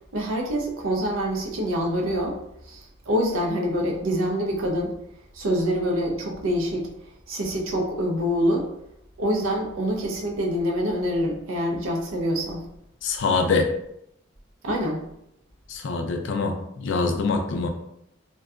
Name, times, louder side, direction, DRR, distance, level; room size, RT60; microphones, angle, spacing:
voice 1, 0.1-2.4 2.7-4.9 5.3-6.9 7.3-8.7 9.2-12.7 14.6-15.0, equal, 80° right, 0 dB, 0.6 m, -25 dB
voice 2, 13.0-13.7 15.7-17.7, left 4 dB, 65° left, 5 dB, 0.4 m, -24 dB
2.6 x 2.2 x 2.3 m, 0.78 s
head